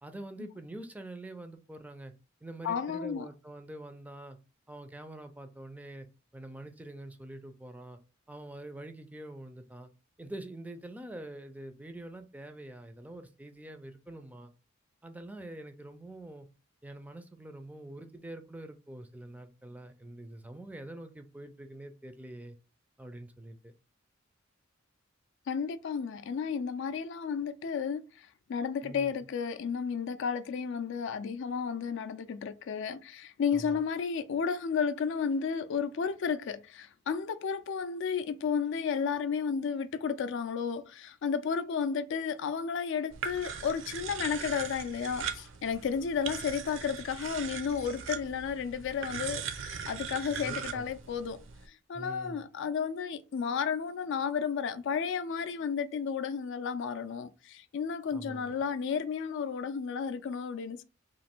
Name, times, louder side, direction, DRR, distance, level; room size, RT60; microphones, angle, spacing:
voice 1, 0.0-2.1 2.4-4.4 4.7-6.1 6.3-8.0 8.3-9.9 10.2-14.5 15.0-16.5 16.8-22.6 23.0-23.7 28.8-29.1 33.5-33.8 50.3-50.9 51.9-52.4 58.1-58.6, right 1 dB, 10° right, 0.4 m, -45 dB
voice 2, 2.6-3.3 25.5-51.4 51.7-60.8, left 6 dB, 65° left, 0.4 m, -33 dB
sound 1, 43.1-51.7, right 7 dB, 65° right, 0.5 m, -40 dB
3.1 x 2.6 x 4.3 m
head